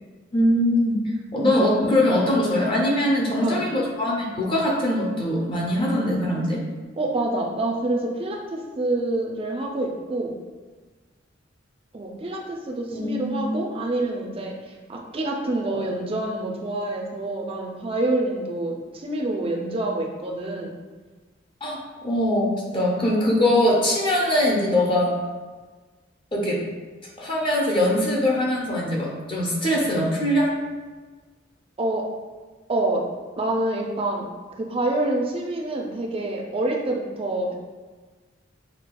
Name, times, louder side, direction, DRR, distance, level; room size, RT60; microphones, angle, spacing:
voice 1, 0.3-1.0 1.3-6.6 12.9-13.5 21.6-25.1 26.3-26.6 27.2-30.5, left 1 dB, 25° left, -3 dB, 0.5 m, -22 dB
voice 2, 7.0-10.3 11.9-20.7 31.8-32.1 32.7-33.1 33.4-34.3 34.6-37.5, right 2 dB, 30° right, 1 dB, 0.4 m, -27 dB
5.7 x 2.3 x 2.2 m, 1.4 s
head